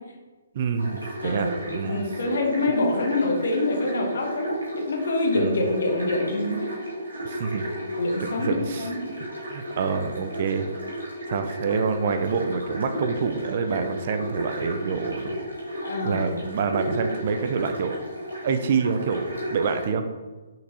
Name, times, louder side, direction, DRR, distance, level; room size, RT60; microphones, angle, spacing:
voice 1, 0.5-2.0 5.4-5.7 7.2-7.8 8.2-8.9 9.2-10.7 11.3-15.4 16.0-18.0 18.4-20.0, right 5 dB, 45° right, 8 dB, 0.5 m, -27 dB
sound 1, 0.8-19.9, equal, 85° right, 2.0 m, -33 dB
voice 2, 1.2-4.5 4.8-6.6 8.0-9.0 15.8-16.3, left 2 dB, 60° left, 2 dB, 1.2 m, -26 dB
5.9 x 5.9 x 2.8 m, 1.3 s
figure-of-eight pair, 130°, 0 cm